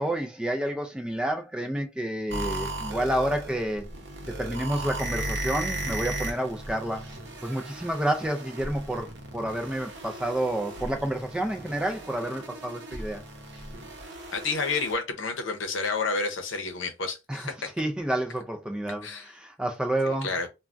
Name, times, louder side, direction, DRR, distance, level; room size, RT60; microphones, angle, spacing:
voice 1, 0.0-3.9 4.3-7.1 7.4-13.2 17.3-17.5 17.8-20.3, right 1 dB, 5° right, 0.3 m, -29 dB
sound 1, 2.3-14.9, right 1 dB, 60° right, 0.7 m, -36 dB
voice 2, 14.3-17.5 19.0-19.3 20.2-20.5, left 4 dB, 75° left, 0.7 m, -30 dB
3.3 x 2.2 x 2.4 m
head